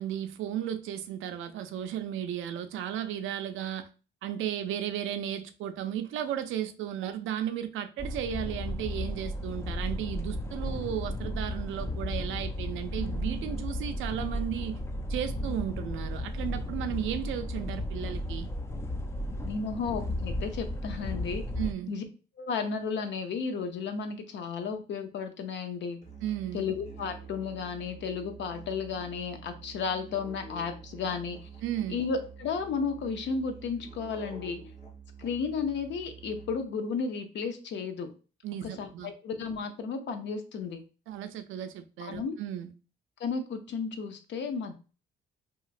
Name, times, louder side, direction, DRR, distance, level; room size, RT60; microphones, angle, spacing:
voice 1, 0.0-3.9 4.2-14.8 15.1-18.5 21.6-21.9 26.2-26.6 31.6-32.0 38.4-39.1 41.1-42.7, right 10 dB, 80° right, 0.4 m, -34 dB
sound 1, 8.0-21.7, left 1 dB, 15° left, 0.3 m, -34 dB
voice 2, 19.4-21.4 21.9-22.0 22.4-26.0 26.5-31.5 31.9-34.6 35.2-38.1 38.6-40.8 42.0-42.4 43.2-44.7, left 5 dB, 65° left, 0.6 m, -33 dB
Musical instrument, 26.0-36.8, right 5 dB, 35° left, 1.1 m, -47 dB
2.9 x 2.4 x 2.4 m
cardioid pair, 90°, 20 cm